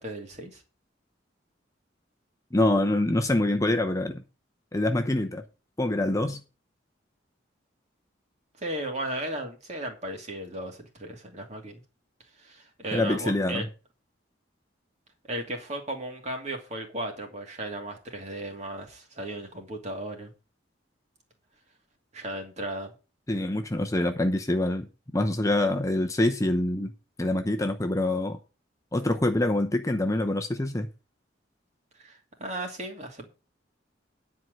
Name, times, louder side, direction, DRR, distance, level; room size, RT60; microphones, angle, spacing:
voice 1, 0.0-0.6 8.6-11.8 12.4-13.6 15.3-20.3 22.1-22.9 32.0-33.3, right 1 dB, 35° right, 2.5 m, -35 dB
voice 2, 2.5-4.2 4.7-5.4 5.8-6.4 12.9-13.7 23.3-24.9 25.1-26.9 27.2-28.4 28.9-30.9, left 1 dB, 15° left, 0.8 m, -25 dB
10.0 x 4.7 x 7.7 m
head